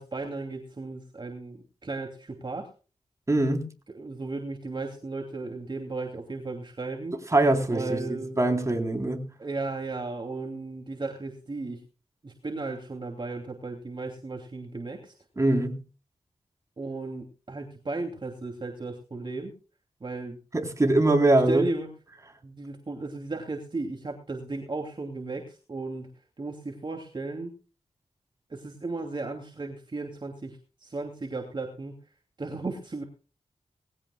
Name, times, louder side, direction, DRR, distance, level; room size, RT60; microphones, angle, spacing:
voice 1, 0.0-2.7 3.9-7.2 7.7-8.4 9.4-11.8 12.2-15.1 16.8-19.5 20.0-20.4 21.5-21.9 22.4-26.1 26.4-27.5 28.5-31.9 32.4-33.0, right 3 dB, 40° right, 2.7 m, -35 dB
voice 2, 3.3-3.7 7.3-9.3 15.4-15.8 20.5-21.7, right 2 dB, 25° right, 3.8 m, -23 dB
20.0 x 16.5 x 2.3 m
wide cardioid pair, 105°, 12 cm